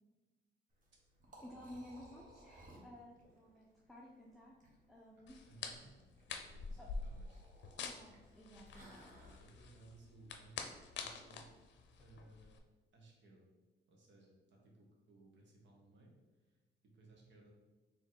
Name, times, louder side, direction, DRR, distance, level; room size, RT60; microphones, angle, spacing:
Liquid, 0.7-9.4, right 1 dB, 40° right, 1.2 m, -62 dB
voice 1, 1.4-4.5 4.9-5.5 6.8-6.9 7.7-9.0, left 1 dB, ahead, -4 dB, 0.6 m, -54 dB
sound 1, 5.3-12.6, left 5 dB, 65° left, 0.6 m, -47 dB
voice 2, 5.5-6.0 6.3-7.4 9.2-11.5 12.0-12.5 12.9-13.5 13.9-16.1 16.8-17.5, right 2 dB, 70° right, -1 dB, 1.2 m, -61 dB
4.2 x 3.0 x 3.9 m, 1.2 s
cardioid pair, 90°, 20 cm